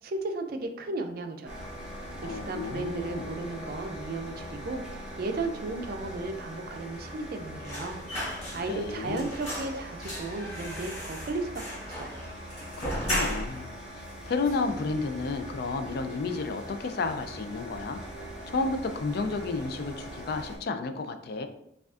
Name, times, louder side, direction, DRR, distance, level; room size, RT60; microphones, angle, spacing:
voice 1, 0.0-1.7 2.2-4.8 5.2-8.0 8.5-12.2, right 2 dB, 55° right, 6 dB, 0.4 m, -35 dB
sound 1, 1.5-20.6, equal, 5° right, 0.7 m, -42 dB
voice 2, 2.2-3.3 8.7-9.3 12.8-18.0 18.5-21.5, left 3 dB, 60° left, 8 dB, 0.4 m, -32 dB
sound 2, 7.6-8.9 9.2-13.7 14.0-14.1 14.4-15.3 15.6-15.8 16.1-16.8 17.1-17.3, equal, 35° left, 1.2 m, -36 dB
4.8 x 2.4 x 2.4 m, 0.78 s
head